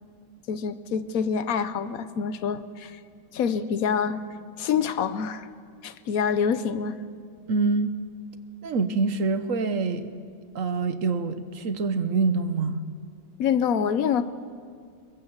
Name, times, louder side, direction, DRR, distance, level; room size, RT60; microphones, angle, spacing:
voice 1, 0.5-3.0 3.3-4.2 4.6-5.5 5.8-7.0 13.4-14.2, left 7 dB, 60° left, 12 dB, 1.0 m, -26 dB
voice 2, 7.5-7.9 8.6-10.1 10.5-12.8, right 4 dB, 50° right, 10 dB, 1.1 m, -25 dB
23.0 x 21.0 x 7.3 m, 2.2 s
omnidirectional pair, 2.3 m